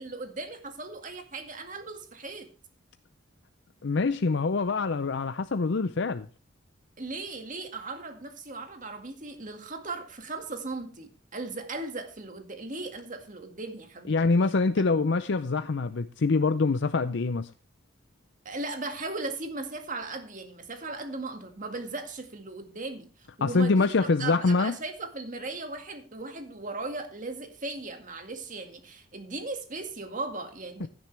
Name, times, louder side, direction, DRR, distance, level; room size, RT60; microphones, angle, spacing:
voice 1, 0.0-2.5 7.0-14.2 18.5-30.9, right 3 dB, 40° right, 2.1 m, -37 dB
voice 2, 3.8-6.3 14.1-17.5 23.4-24.7 30.8-30.9, left 3 dB, 60° left, 0.6 m, -25 dB
16.0 x 10.5 x 3.4 m
head